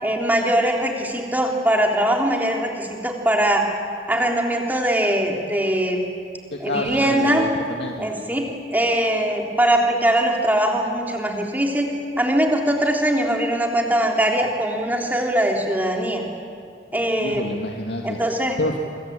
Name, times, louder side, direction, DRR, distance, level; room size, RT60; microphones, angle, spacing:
voice 1, 0.0-3.6 4.1-6.0 6.6-7.5 8.0-8.4 8.7-11.9 12.2-16.2 16.9-17.4 18.0-18.6, right 1 dB, 10° right, 0 dB, 3.5 m, -21 dB
voice 2, 6.5-8.1 17.2-18.8, left 1 dB, 75° left, 1 dB, 2.1 m, -29 dB
27.0 x 24.0 x 8.9 m, 2.3 s
head